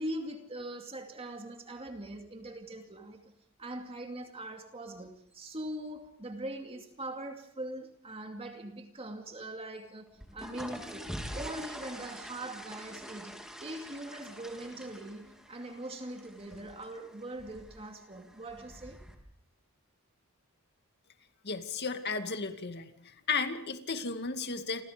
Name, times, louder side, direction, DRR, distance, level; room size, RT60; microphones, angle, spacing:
voice 1, 0.0-3.3 3.6-19.0, right 1 dB, 25° right, 2.5 m, -42 dB
sound 1, 10.1-19.1, equal, 5° right, 3.5 m, -45 dB
voice 2, 21.4-22.9 23.3-24.8, left 4 dB, 50° left, 2.3 m, -34 dB
29.5 x 27.0 x 5.2 m
head